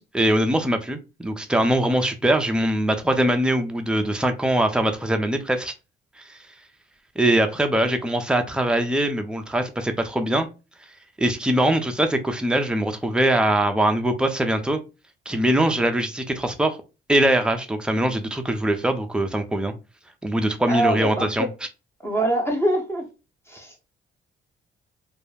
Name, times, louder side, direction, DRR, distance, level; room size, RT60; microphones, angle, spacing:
voice 1, 0.1-5.7 6.2-6.4 7.2-10.5 11.2-14.8 15.3-16.8 17.1-19.7 20.2-21.5, right 1 dB, 5° right, 0.5 m, -22 dB
voice 2, 20.7-21.3 22.0-23.0 23.5-23.7, right 1 dB, 10° left, 0.8 m, -23 dB
2.3 x 2.0 x 3.2 m
cardioid pair, 90°, 20 cm